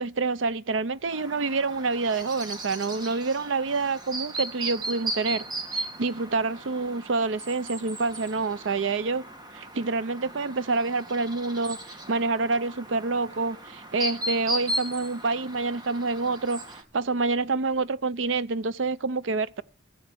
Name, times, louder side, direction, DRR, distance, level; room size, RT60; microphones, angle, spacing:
voice 1, 0.0-5.4 5.7-9.2 9.5-11.8 12.1-16.6 16.9-19.6, right 3 dB, 75° right, 0.6 m, -27 dB
Chirp tweet, 1.1-16.8, right 1 dB, 20° right, 2.0 m, -37 dB
14.5 x 8.0 x 6.2 m
head